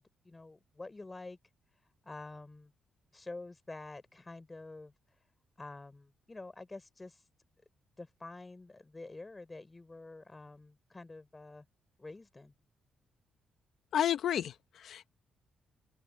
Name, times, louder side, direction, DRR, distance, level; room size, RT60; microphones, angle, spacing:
voice 1, 0.0-1.4 2.0-2.7 3.1-4.9 5.6-7.2 8.0-11.7 12.0-12.5, left 2 dB, 15° left, 5.2 m, -48 dB
voice 2, 13.9-15.1, left 10 dB, 65° left, 1.2 m, -31 dB
open air
cardioid pair, 125°, 0 cm